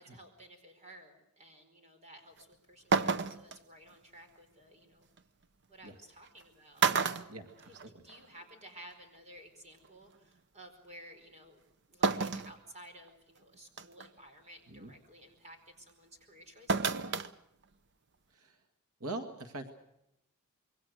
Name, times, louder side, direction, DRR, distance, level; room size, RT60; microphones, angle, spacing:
voice 1, 0.0-5.1 5.7-7.8 8.0-11.6 11.9-17.2, right 1 dB, 30° right, 5 dB, 4.7 m, -55 dB
sound 1, 2.4-2.5 2.9-3.6 5.2-5.3 6.3-6.4 6.8-8.2 8.5-8.6 9.8-9.9 12.0-12.5 13.1-13.2 13.8-14.1 16.7-17.3 17.6-17.7, right 5 dB, 50° right, 0.9 m, -30 dB
voice 2, 7.3-8.0 14.7-14.9 18.3-18.6 19.0-19.7, right 2 dB, 85° right, 6 dB, 2.1 m, -43 dB
26.5 x 22.5 x 6.6 m, 0.83 s
head